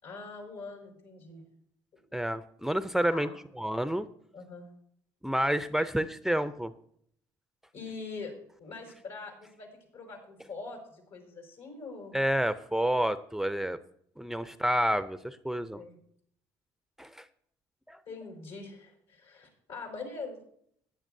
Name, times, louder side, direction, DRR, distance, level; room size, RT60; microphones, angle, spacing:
voice 1, 0.0-1.4 1.9-2.0 3.1-3.4 4.3-4.7 5.7-5.8 7.7-8.3 8.6-9.7 9.9-12.2 14.4-14.5 15.7-16.0 18.1-20.4, left 4 dB, 75° left, 1 dB, 5.3 m, -43 dB
voice 2, 2.1-3.3 3.6-4.1 5.2-6.7 12.1-13.8 14.2-15.8 17.0-17.3 17.9-18.0, equal, 5° right, 12 dB, 0.5 m, -29 dB
16.5 x 10.0 x 2.7 m, 0.67 s
supercardioid pair, 75°, 10 cm